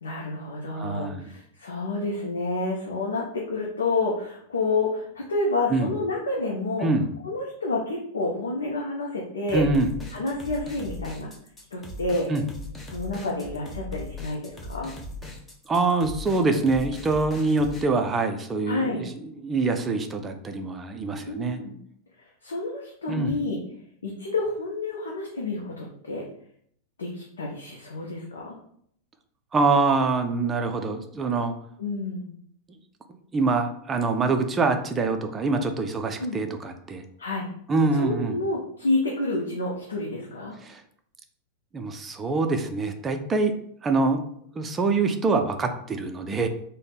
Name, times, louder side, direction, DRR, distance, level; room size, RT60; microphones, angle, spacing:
voice 1, 0.0-6.8 7.2-9.6 10.1-11.3 11.7-12.3 12.9-14.9 18.7-19.0 21.2-21.7 22.4-23.6 24.0-26.2 27.0-28.5 31.8-32.3 36.2-36.4 37.2-37.5 37.9-40.6, left 2 dB, 70° left, -2 dB, 0.5 m, -29 dB
voice 2, 0.7-1.3 5.7-5.9 6.8-7.1 9.5-9.9 12.3-12.5 15.7-21.6 23.1-23.4 29.5-31.5 33.3-37.0 37.7-38.4 40.6-40.8 41.7-43.5 43.8-44.2 44.6-46.5, right 3 dB, 20° right, 6 dB, 0.4 m, -25 dB
sound 1, 9.5-17.8, left 2 dB, 15° left, 0.7 m, -39 dB
3.3 x 2.1 x 3.9 m, 0.66 s
figure-of-eight pair, 90°, 0 cm